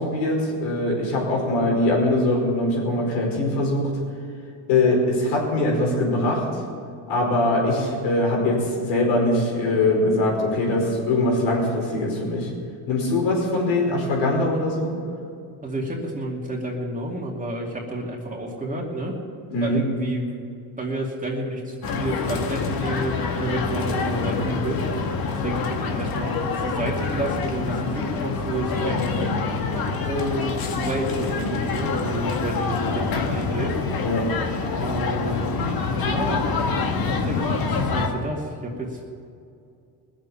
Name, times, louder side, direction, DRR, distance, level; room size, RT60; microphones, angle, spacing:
voice 1, 0.0-4.0 4.7-6.6 7.1-12.5 12.9-14.9 19.5-19.9 34.0-34.3, left 2 dB, 80° left, 0 dB, 5.0 m, -22 dB
voice 2, 15.6-19.1 19.6-20.4 20.8-24.8 25.3-29.4 30.1-33.7 34.8-39.1, right 1 dB, 20° right, -2 dB, 2.6 m, -30 dB
sound 1, 21.8-38.1, left 4 dB, 60° left, 1.9 m, -26 dB
19.5 x 7.5 x 8.6 m, 2.4 s
cardioid pair, 105°, 40 cm